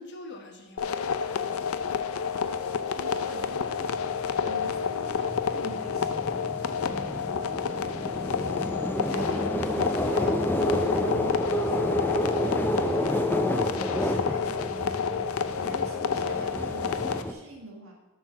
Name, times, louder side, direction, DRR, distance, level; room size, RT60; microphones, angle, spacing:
voice 1, 0.0-2.2, left 2 dB, 55° left, 2 dB, 1.2 m, -46 dB
sound 1, 0.8-17.2, left 6 dB, 75° left, 0.4 m, -30 dB
sound 2, 1.9-2.0 2.4-17.3, left 1 dB, 10° left, 0.4 m, -30 dB
voice 2, 2.9-4.1 4.4-8.8 9.0-15.1 15.6-17.9, right 1 dB, 75° right, 0 dB, 1.6 m, -45 dB
7.5 x 4.6 x 5.7 m, 1.1 s
head